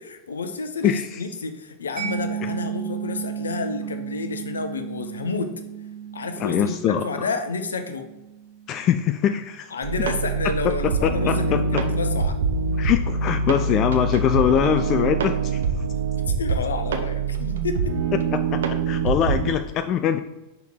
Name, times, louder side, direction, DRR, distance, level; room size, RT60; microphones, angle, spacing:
voice 1, 0.0-5.5 6.1-8.1 9.7-12.4 16.3-17.9, left 4 dB, 70° left, 7 dB, 0.7 m, -30 dB
voice 2, 0.8-1.2 2.4-2.5 6.4-7.3 8.7-9.7 11.0-11.8 12.8-15.6 18.3-20.2, left 9 dB, 35° left, 9 dB, 0.3 m, -23 dB
Mallet percussion, 2.0-9.4, right 9 dB, 35° right, 1.9 m, -34 dB
sound 1, 9.8-19.5, right 4 dB, 60° right, 0.6 m, -24 dB
5.8 x 4.4 x 4.2 m, 1.0 s
figure-of-eight pair, 90°, 0 cm